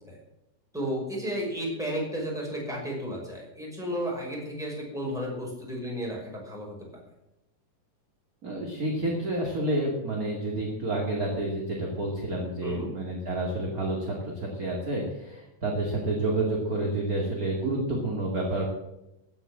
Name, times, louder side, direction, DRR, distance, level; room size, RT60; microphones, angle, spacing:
voice 1, 0.7-6.9 12.6-12.9, equal, ahead, -3 dB, 5.5 m, -33 dB
voice 2, 8.4-18.6, right 2 dB, 30° right, -1 dB, 2.5 m, -29 dB
16.0 x 8.2 x 7.7 m, 0.93 s
omnidirectional pair, 3.8 m